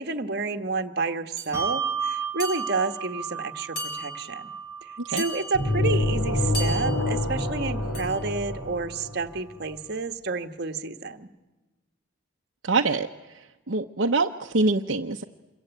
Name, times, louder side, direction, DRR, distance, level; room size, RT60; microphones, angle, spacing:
voice 1, 0.0-4.5 4.8-11.3, right 3 dB, 50° right, 5 dB, 1.4 m, -30 dB
sound 1, 1.4-1.6 2.4-3.0 3.8-4.4 5.2-5.8 6.5-7.2 7.9-8.3, equal, 50° left, 5.3 m, -37 dB
Bell, 1.5-8.4, right 6 dB, 15° right, 1.3 m, -35 dB
sound 2, 5.5-9.4, left 1 dB, 90° left, 3.5 m, -26 dB
voice 2, 12.6-13.1 13.7-15.2, right 3 dB, 65° right, 3 dB, 0.9 m, -24 dB
27.5 x 23.0 x 9.2 m, 1.2 s
head